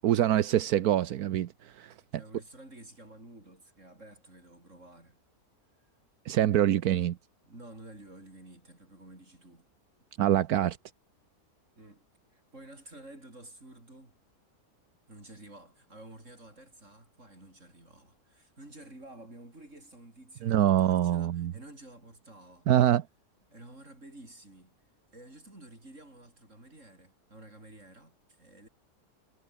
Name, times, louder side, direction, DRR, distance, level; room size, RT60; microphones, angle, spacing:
voice 1, 0.0-2.2 6.2-7.2 10.2-10.8 20.4-21.5 22.7-23.1, right 11 dB, 80° right, 1.3 m, -25 dB
voice 2, 2.1-5.2 7.4-9.7 11.8-14.2 15.1-22.7 23.5-24.8 25.1-28.7, right 1 dB, 50° right, 7.3 m, -51 dB
omnidirectional pair, 1.6 m